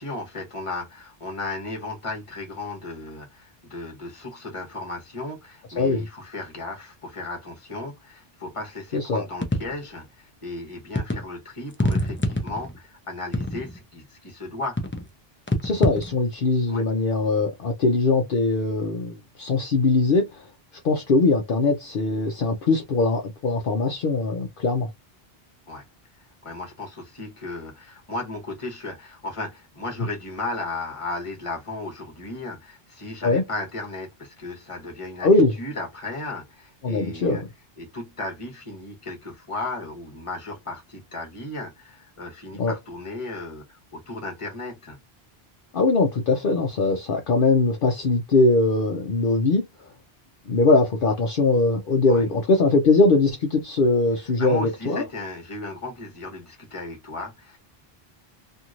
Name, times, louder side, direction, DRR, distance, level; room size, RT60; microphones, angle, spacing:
voice 1, 0.0-14.8 16.7-16.8 25.7-25.8 26.4-37.4 37.8-45.0 52.1-52.2 53.8-53.9 54.4-57.6, left 2 dB, 30° left, 1.1 m, -35 dB
voice 2, 8.9-9.2 15.6-20.4 20.8-24.9 33.2-33.4 35.2-35.5 36.8-37.5 42.6-42.7 45.7-49.7 50.5-55.0, left 3 dB, 65° left, 0.8 m, -21 dB
sound 1, 9.4-10.0 11.0-11.2 11.7-12.8 13.3-13.8 14.8-15.1 15.5-16.1, left 1 dB, 15° left, 0.4 m, -25 dB
3.0 x 2.7 x 2.5 m
omnidirectional pair, 1.0 m